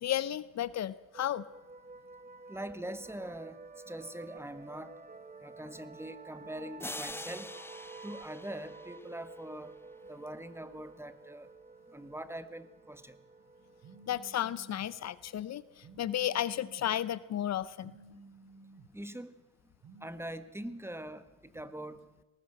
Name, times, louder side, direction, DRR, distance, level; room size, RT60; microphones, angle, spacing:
voice 1, 0.0-1.4 14.1-15.6 16.0-17.9, left 11 dB, 60° left, 18 dB, 0.8 m, -33 dB
sound 1, 1.1-16.5, right 4 dB, 30° right, 1.8 m, -51 dB
voice 2, 2.5-5.0 5.4-7.5 8.0-9.8 10.1-11.5 11.9-13.2 18.9-19.3 20.0-22.0, right 1 dB, 10° right, 12 dB, 1.5 m, -43 dB
sound 2, 6.8-9.5, left 2 dB, 10° left, 0.7 m, -44 dB
Telephone, 13.8-14.9 15.8-16.9 17.8-18.9 19.8-20.1, right 3 dB, 60° right, 6.2 m, -54 dB
19.5 x 18.5 x 7.9 m, 1.1 s
cardioid pair, 90°, 30 cm